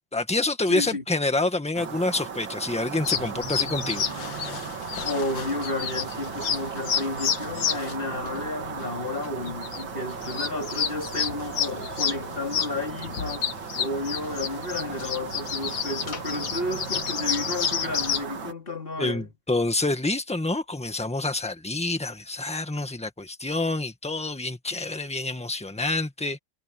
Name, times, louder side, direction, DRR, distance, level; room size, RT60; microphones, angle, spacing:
voice 1, 0.1-4.0 19.0-26.4, left 2 dB, 5° left, 1.5 m, -27 dB
voice 2, 0.7-1.0 5.0-13.5 13.8-19.3, left 2 dB, 30° left, 2.8 m, -32 dB
sound 1, 1.7-18.5, right 6 dB, 90° right, 2.7 m, -37 dB
sound 2, 3.0-18.2, left 8 dB, 80° left, 2.0 m, -31 dB
omnidirectional pair, 2.0 m